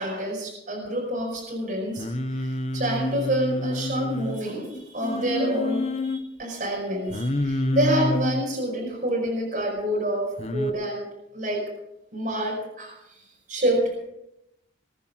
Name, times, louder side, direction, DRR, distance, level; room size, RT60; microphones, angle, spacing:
voice 1, 0.0-2.0 2.3-11.0 11.3-11.6 12.1-12.9 13.5-13.9, right 1 dB, 45° right, -3 dB, 5.2 m, -27 dB
Singing, 2.0-4.4 5.0-6.2 7.1-8.4 10.4-10.7, left 1 dB, 35° left, 1.1 m, -28 dB
21.5 x 9.9 x 6.3 m, 0.85 s
head